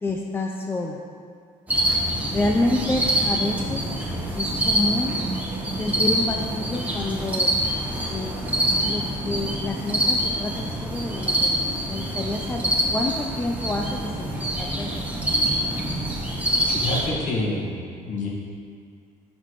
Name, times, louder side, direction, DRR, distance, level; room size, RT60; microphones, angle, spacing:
voice 1, 0.0-1.0 2.3-3.8 4.3-5.2 5.8-7.5 8.1-8.3 8.8-15.7, left 2 dB, 15° left, 1 dB, 0.4 m, -28 dB
sound 1, 1.7-17.1, right 1 dB, 10° right, 1.2 m, -25 dB
voice 2, 16.7-17.7 18.1-18.3, left 2 dB, 55° left, -4 dB, 1.8 m, -27 dB
12.0 x 4.3 x 3.1 m, 2.1 s
cardioid pair, 105°, 15 cm